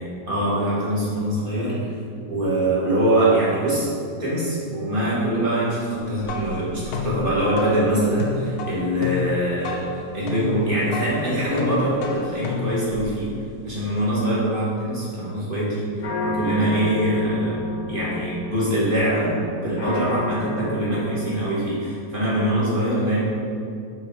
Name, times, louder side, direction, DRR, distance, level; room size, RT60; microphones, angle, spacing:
voice 1, 0.0-1.8 2.3-3.9 4.2-9.8 10.1-13.3 13.6-17.6 17.9-23.2, right 1 dB, 30° right, -8 dB, 1.6 m, -23 dB
sound 1, 6.2-13.7, left 5 dB, 90° left, 1.4 m, -31 dB
sound 2, 16.0-22.1, left 2 dB, 70° left, 1.2 m, -31 dB
5.6 x 3.9 x 4.5 m, 2.4 s
omnidirectional pair, 1.8 m